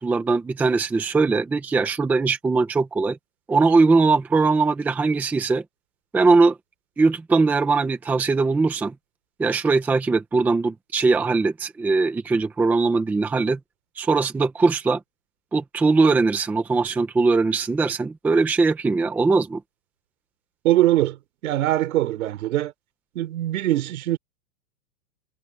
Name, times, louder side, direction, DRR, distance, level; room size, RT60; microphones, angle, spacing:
voice 1, 0.0-3.2 3.5-5.6 6.1-6.6 7.0-8.9 9.4-13.6 14.0-15.0 15.5-19.6, right 3 dB, 5° right, 0.8 m, -20 dB
voice 2, 20.6-21.2 21.4-22.7 23.2-24.2, right 14 dB, 65° right, 3.8 m, -22 dB
supercardioid pair, 170°, 46 cm